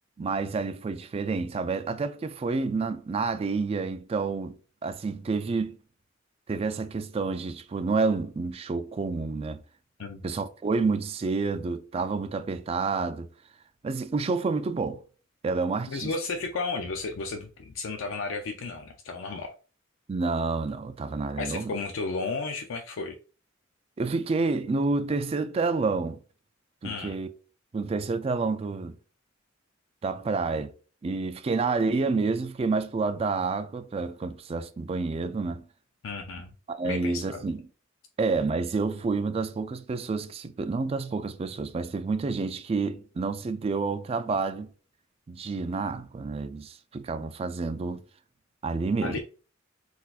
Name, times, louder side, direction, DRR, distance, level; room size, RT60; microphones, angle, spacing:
voice 1, 0.2-5.8 6.5-9.6 10.2-13.3 13.8-15.0 15.4-16.1 20.1-21.7 24.0-26.2 26.8-27.3 27.7-29.0 30.0-30.7 31.0-35.7 36.7-37.6 38.2-44.7 45.3-48.0 48.6-49.2, right 4 dB, 30° right, 0.3 m, -29 dB
voice 2, 15.9-19.5 21.4-23.2 26.8-27.2 36.0-36.5 36.8-37.4 49.0-49.2, left 4 dB, 75° left, 0.4 m, -33 dB
3.8 x 2.7 x 2.4 m
head